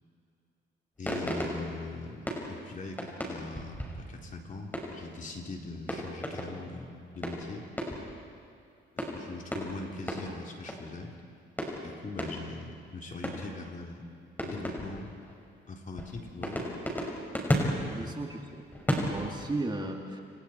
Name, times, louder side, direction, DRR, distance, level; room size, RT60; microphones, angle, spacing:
voice 1, 1.0-7.6 9.0-11.1 11.8-14.0 14.4-15.1 15.7-16.6 17.9-18.2, left 3 dB, 40° left, 1 dB, 3.8 m, -41 dB
sound 1, 1.1-5.2 5.8-6.7 7.1-8.4 9.0-11.0 11.6-12.8 13.2-13.7 14.4-15.4 16.0-19.6, equal, 10° left, 5.9 m, -35 dB
voice 2, 17.9-18.6 19.0-20.2, right 2 dB, 20° right, 2 dB, 2.6 m, -35 dB
30.0 x 28.5 x 4.6 m, 2.5 s
cardioid pair, 90°, 20 cm